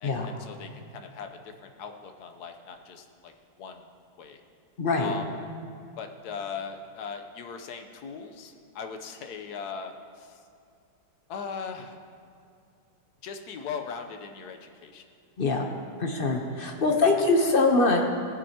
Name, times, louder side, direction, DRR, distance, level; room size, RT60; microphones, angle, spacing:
voice 1, 0.0-3.3 3.6-3.8 4.2-4.4 5.0-5.3 6.0-10.4 11.3-12.0 13.2-15.1, left 6 dB, 65° left, 5 dB, 1.2 m, -39 dB
voice 2, 4.8-5.1 15.4-15.7 16.0-18.0, left 3 dB, 45° left, 2 dB, 0.7 m, -23 dB
18.0 x 9.0 x 2.9 m, 2.5 s
omnidirectional pair, 2.0 m